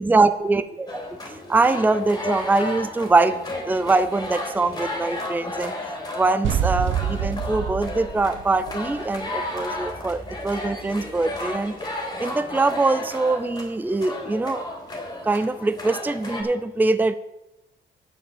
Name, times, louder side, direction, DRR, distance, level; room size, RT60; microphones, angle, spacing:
voice 1, 0.0-5.7 6.1-11.7 12.2-14.6 15.2-17.1, right 3 dB, 10° right, 13 dB, 0.5 m, -23 dB
sound 1, 0.9-16.4, left 1 dB, 20° left, 3.2 m, -33 dB
sound 2, 6.4-9.4, right 8 dB, 75° right, 1.0 m, -27 dB
8.7 x 7.1 x 7.2 m, 0.92 s
cardioid pair, 90°, 20 cm